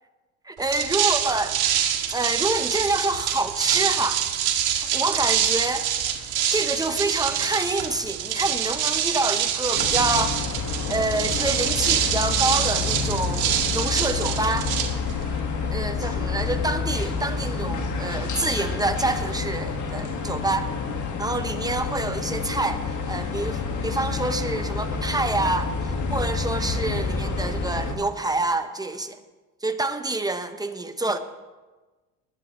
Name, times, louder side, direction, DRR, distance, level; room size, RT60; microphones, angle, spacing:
voice 1, 0.5-1.6 2.1-4.2 4.9-5.9 6.5-10.4 10.9-14.7 15.7-20.7 21.2-29.2 29.6-31.2, right 2 dB, 10° right, 8 dB, 1.0 m, -27 dB
sound 1, 0.6-15.4, right 10 dB, 55° right, 1.9 m, -25 dB
sound 2, 9.7-27.9, left 4 dB, 40° left, 1.9 m, -28 dB
20.5 x 10.5 x 3.2 m, 1.2 s
supercardioid pair, 105°, 45 cm